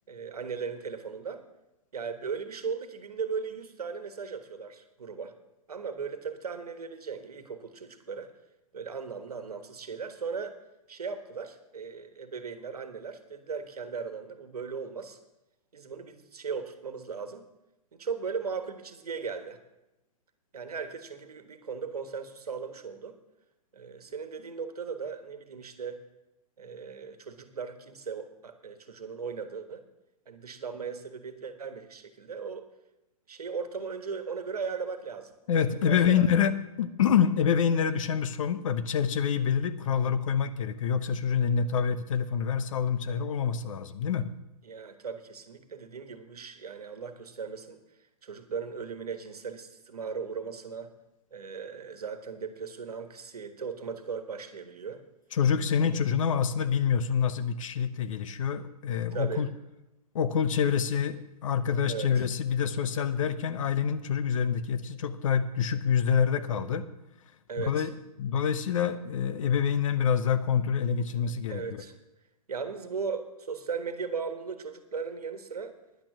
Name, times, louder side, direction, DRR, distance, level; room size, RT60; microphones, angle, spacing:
voice 1, 0.1-1.5 1.9-5.3 5.7-8.3 8.7-10.6 10.9-15.2 15.7-17.5 17.9-19.6 20.5-23.2 23.7-26.0 26.6-29.8 30.3-32.7 33.3-35.3 35.8-36.3 44.6-47.8 48.2-50.9 51.3-55.0 55.6-55.9 59.1-59.5 61.8-62.2 67.5-67.9 71.5-71.9 72.5-75.8, right 5 dB, 80° right, 10 dB, 1.4 m, -37 dB
voice 2, 35.5-36.5 36.8-44.3 55.3-59.5 60.1-66.8 67.6-67.9 68.2-71.6, left 7 dB, 55° left, 12 dB, 0.9 m, -26 dB
10.5 x 8.9 x 6.0 m, 0.95 s
hypercardioid pair, 130°, 19 cm